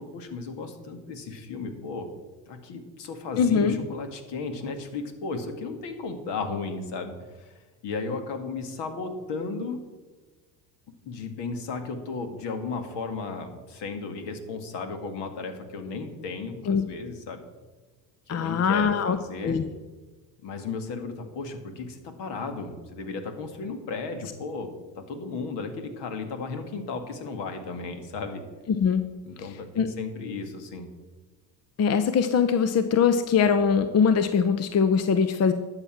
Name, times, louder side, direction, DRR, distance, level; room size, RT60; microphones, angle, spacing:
voice 1, 0.0-2.1 2.5-7.5 7.8-9.8 11.1-17.4 18.3-19.6 20.4-28.5 29.2-30.9, left 4 dB, 55° left, 6 dB, 2.0 m, -35 dB
voice 2, 3.4-3.7 16.7-16.8 18.3-19.2 19.4-19.6 28.7-29.0 29.8-29.9 31.8-35.5, left 6 dB, 30° left, 10 dB, 0.7 m, -22 dB
11.5 x 7.4 x 5.9 m, 1.3 s
hypercardioid pair, 80°, 49 cm